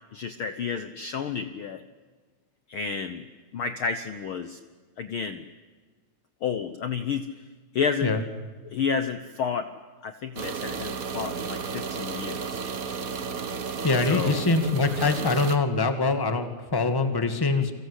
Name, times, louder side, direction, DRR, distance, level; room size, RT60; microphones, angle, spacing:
voice 1, 0.1-1.8 2.7-3.2 3.5-4.6 5.0-5.4 6.4-7.3 7.7-8.1 8.7-9.7 10.0-12.6 14.1-14.4, left 6 dB, 60° left, 10 dB, 1.5 m, -30 dB
sound 1, 10.4-15.6, right 5 dB, 50° right, 1.0 m, -33 dB
voice 2, 13.8-17.7, left 3 dB, 10° left, 8 dB, 1.5 m, -24 dB
30.0 x 24.5 x 8.3 m, 1.4 s
omnidirectional pair, 3.3 m